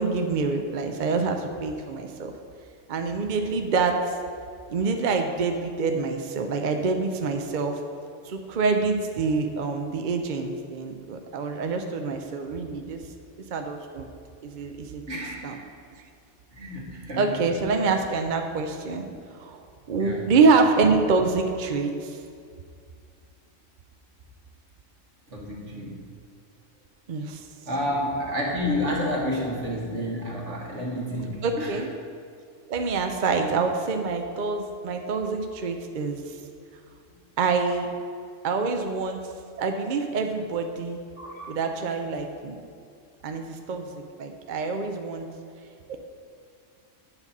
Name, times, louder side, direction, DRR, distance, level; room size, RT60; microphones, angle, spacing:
voice 1, 0.0-2.3 2.9-4.2 4.7-7.8 8.2-13.0 13.5-14.1 14.4-15.0 15.4-15.5 17.2-19.6 19.9-22.2 27.1-27.5 31.4-31.9 32.7-36.4 37.4-37.9 38.4-39.2 39.6-41.0 41.5-42.6 43.2-45.3 45.9-46.0, right 4 dB, 50° right, 4 dB, 0.6 m, -26 dB
voice 2, 15.1-15.6 16.5-17.2 17.7-17.9 20.0-20.2 25.3-26.1 27.7-31.8 41.2-41.6, left 1 dB, 65° right, -2 dB, 1.8 m, -30 dB
8.8 x 4.0 x 7.2 m, 2.3 s
omnidirectional pair, 1.3 m